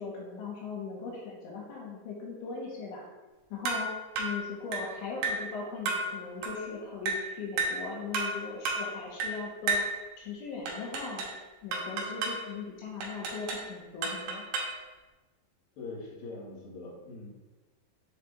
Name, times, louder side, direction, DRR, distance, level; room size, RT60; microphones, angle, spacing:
voice 1, 0.0-3.0 3.5-3.9 4.2-9.8 10.2-11.3 11.6-14.4, left 4 dB, 80° left, -4 dB, 3.3 m, -39 dB
sound 1, 3.6-3.9 4.2-4.4 4.7-4.9 5.2-5.5 5.9-6.1 6.4-6.6 7.1-7.3 7.6-7.8 8.1-8.4 8.6-8.9 9.2-9.4 9.7-9.9 10.7-11.4 11.7-12.4 13.0-13.7 14.0-14.8, right 3 dB, 75° right, 2.2 m, -32 dB
voice 2, 15.8-17.3, left 3 dB, 60° left, -6 dB, 2.8 m, -42 dB
7.6 x 5.7 x 2.4 m, 1.2 s
omnidirectional pair, 5.7 m